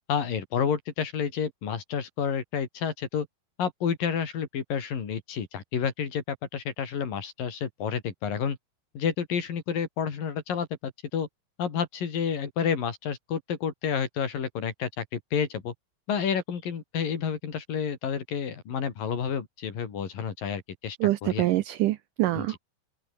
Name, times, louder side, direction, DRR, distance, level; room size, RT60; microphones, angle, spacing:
voice 1, 0.1-3.3 3.6-8.6 8.9-11.3 11.6-15.7 16.1-21.5 22.3-22.5, left 7 dB, 65° left, 4.8 m, -30 dB
voice 2, 21.0-22.6, right 15 dB, 75° right, 2.0 m, -25 dB
open air
omnidirectional pair, 4.4 m